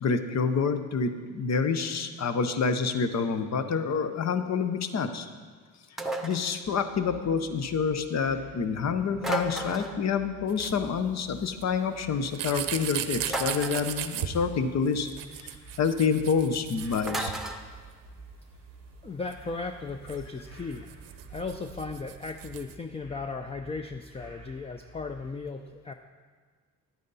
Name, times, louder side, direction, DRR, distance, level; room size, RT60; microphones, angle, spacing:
voice 1, 0.0-5.3 6.2-15.1 15.4-15.5 15.8-17.4, left 5 dB, 55° left, 9 dB, 0.9 m, -28 dB
sound 1, 6.0-6.5 9.2-10.0 13.3-14.0 17.1-17.6, right 1 dB, ahead, 0.9 m, -33 dB
sound 2, 6.6-25.3, right 2 dB, 75° left, 3.0 m, -51 dB
sound 3, 10.5-10.8 11.6-11.7 12.3-14.3 14.9-17.9 18.3-18.4 18.5-18.6 19.2-22.8, right 12 dB, 85° right, 0.7 m, -37 dB
voice 2, 19.0-25.9, left 4 dB, 20° left, 6 dB, 0.5 m, -36 dB
10.5 x 9.1 x 4.1 m, 1.5 s
cardioid pair, 70°, 32 cm